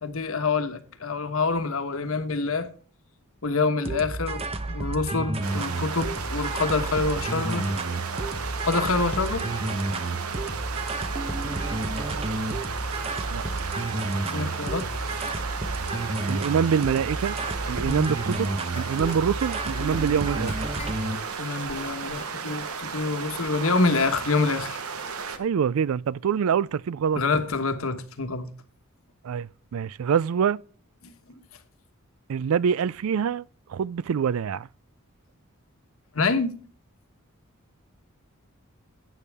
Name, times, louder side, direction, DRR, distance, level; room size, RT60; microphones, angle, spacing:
voice 1, 0.0-2.7 3.4-7.7 8.6-9.5 14.2-15.2 17.9-18.1 21.4-24.8 27.1-28.5 31.0-31.4 36.1-36.6, left 3 dB, 65° left, 1.2 m, -26 dB
sound 1, 3.9-21.2, right 2 dB, 25° right, 0.8 m, -31 dB
sound 2, 5.4-25.4, right 5 dB, 85° right, 1.1 m, -34 dB
voice 2, 16.3-17.3 17.7-20.6 25.4-27.2 29.2-30.6 32.3-33.4 33.7-34.7, right 7 dB, 70° right, 0.3 m, -25 dB
sound 3, 18.7-23.0 23.5-23.6 23.9-24.0 24.2-24.3 24.7-24.8, left 4 dB, 30° left, 1.1 m, -46 dB
12.0 x 8.4 x 3.5 m
head